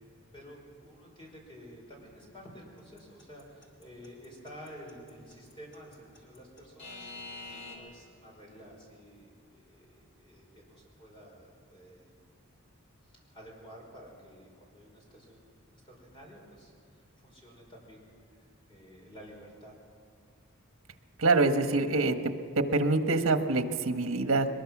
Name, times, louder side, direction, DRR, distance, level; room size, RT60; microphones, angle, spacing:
voice 1, 0.3-12.1 13.0-19.7, equal, 25° left, -1 dB, 5.3 m, -51 dB
Alarm / Clock, 3.0-7.8, left 3 dB, 55° left, 3.5 m, -44 dB
voice 2, 21.2-24.5, right 3 dB, 80° right, 7 dB, 1.3 m, -26 dB
22.0 x 21.0 x 6.1 m, 2.2 s
head